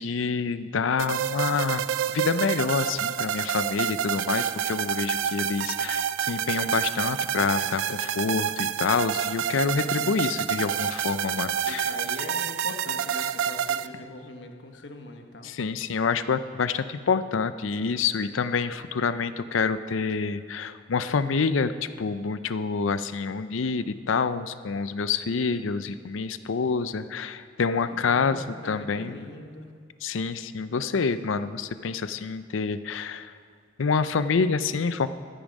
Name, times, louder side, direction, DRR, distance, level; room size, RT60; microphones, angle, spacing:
voice 1, 0.0-11.9 15.4-29.3 30.0-33.3 33.8-35.1, left 5 dB, 85° left, 13 dB, 0.5 m, -27 dB
sound 1, 1.0-13.9, right 9 dB, 80° right, 0.4 m, -28 dB
voice 2, 9.8-10.2 11.6-15.6 27.8-29.7, left 2 dB, 65° left, 4 dB, 1.2 m, -42 dB
14.0 x 8.8 x 5.3 m, 2.1 s
head